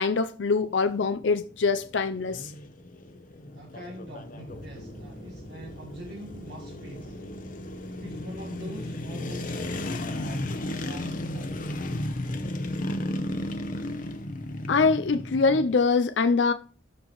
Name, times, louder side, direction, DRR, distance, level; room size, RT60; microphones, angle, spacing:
voice 1, 0.0-2.5 14.7-16.5, left 4 dB, 75° left, 0.5 m, -24 dB
sound 1, 0.5-15.7, left 1 dB, 45° left, 0.9 m, -35 dB
voice 2, 3.5-7.2 8.0-10.5 10.8-11.6, right 1 dB, 65° right, 1.6 m, -44 dB
sound 2, 4.5-14.8, equal, 25° right, 2.1 m, -48 dB
13.5 x 4.5 x 3.1 m
head